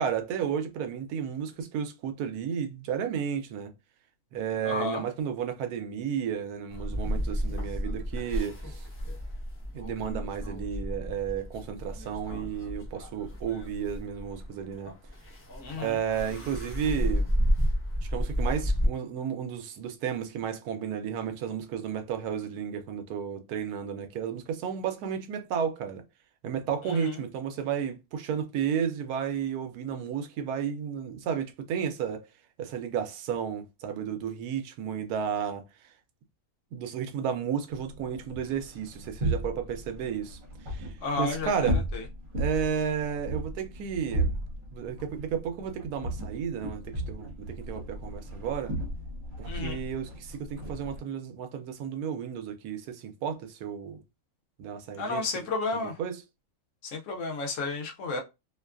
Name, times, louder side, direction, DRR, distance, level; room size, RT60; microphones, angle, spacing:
voice 1, 0.0-3.7 4.3-8.9 9.7-14.9 15.7-17.3 18.0-26.0 26.4-32.3 32.6-35.9 36.7-41.8 42.4-44.4 44.7-48.7 49.4-54.0 54.6-55.4 55.8-56.2, right 8 dB, 90° right, 1.1 m, -33 dB
voice 2, 4.6-5.0 15.6-16.0 26.9-27.2 41.0-42.0 49.4-49.8 55.0-56.0 56.8-58.2, left 3 dB, 65° left, 0.8 m, -32 dB
smoking on the balcony, 6.7-18.9, equal, 15° left, 0.4 m, -31 dB
sound 1, 37.7-51.0, right 1 dB, 60° right, 1.2 m, -35 dB
2.8 x 2.2 x 2.3 m
omnidirectional pair, 1.6 m